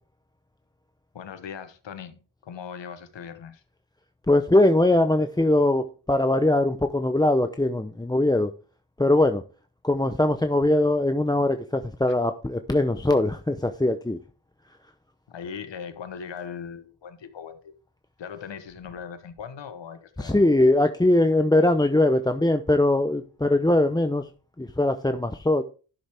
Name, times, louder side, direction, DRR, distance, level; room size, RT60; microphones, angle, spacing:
voice 1, 1.1-3.6 15.3-17.7 18.2-20.4, left 7 dB, 80° left, 1.2 m, -39 dB
voice 2, 4.3-8.5 9.0-9.4 9.8-14.2 20.2-24.3 24.6-25.6, left 1 dB, 10° left, 0.7 m, -21 dB
11.5 x 6.4 x 3.5 m
cardioid pair, 45°, 43 cm